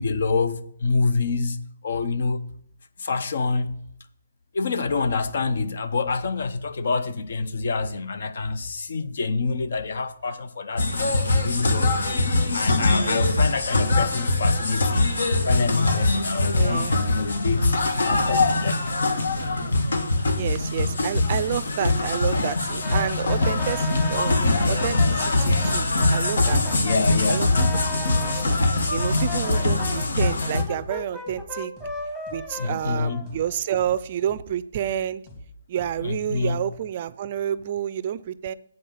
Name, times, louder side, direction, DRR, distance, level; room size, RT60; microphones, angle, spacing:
voice 1, 0.0-1.6 1.8-2.4 3.0-3.8 4.5-12.2 12.5-15.2 15.4-17.7 18.0-18.8 26.8-27.5 32.6-33.3 36.0-36.6, left 4 dB, 65° left, 0.8 m, -26 dB
sound 1, 10.8-30.6, left 2 dB, 80° left, 1.5 m, -22 dB
voice 2, 12.9-13.3 16.5-16.9 20.4-24.4 24.7-26.6 27.3-27.6 28.3-28.6 28.9-31.7 32.3-35.2 35.7-38.5, right 10 dB, 40° right, 0.4 m, -29 dB
Brass instrument, 22.8-28.5 29.0-33.8, equal, 10° left, 1.2 m, -37 dB
sound 2, 28.3-28.4 28.8-28.9 29.3-29.4 29.8-29.9 30.3-30.4 30.8-30.9 31.3-31.4 31.8-31.9 32.3-32.4 32.8-32.9 33.3-33.4 33.8-33.9 34.3-34.4 34.8-34.9 35.3-35.4 35.8-35.9, left 1 dB, 25° left, 2.6 m, -43 dB
7.9 x 5.4 x 6.8 m
hypercardioid pair, 155°, 0 cm